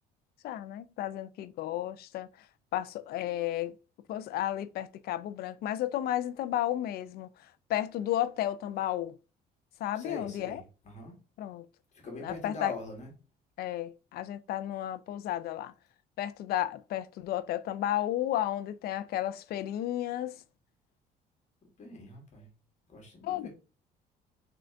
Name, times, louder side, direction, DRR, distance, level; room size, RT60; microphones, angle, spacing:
voice 1, 0.4-2.3 2.7-3.7 4.1-7.3 7.7-9.2 9.8-10.6 11.4-11.6 12.2-12.7 13.6-15.7 16.2-20.4 23.2-23.5, left 12 dB, 65° left, 0.4 m, -33 dB
voice 2, 9.9-11.1 11.9-13.1 21.8-22.5 22.9-23.5, left 2 dB, 45° left, 1.9 m, -42 dB
3.8 x 3.4 x 3.4 m
cardioid pair, 110°, 17 cm